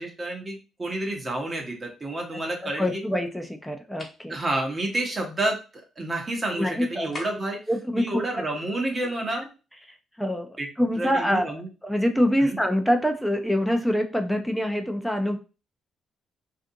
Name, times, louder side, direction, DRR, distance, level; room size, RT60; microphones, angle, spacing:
voice 1, 0.0-3.0 4.3-5.6 6.0-7.6 8.0-9.5 10.6-10.7 11.0-11.7 12.4-12.6, right 1 dB, 30° right, 1 dB, 0.8 m, -29 dB
voice 2, 2.6-4.4 6.6-7.1 7.7-8.2 10.2-11.5 11.8-15.4, equal, ahead, 4 dB, 0.5 m, -25 dB
sound 1, 4.0-4.2 7.1-7.6, left 2 dB, 35° left, 1.1 m, -39 dB
2.5 x 2.4 x 2.7 m, 0.32 s
cardioid pair, 90°, 0 cm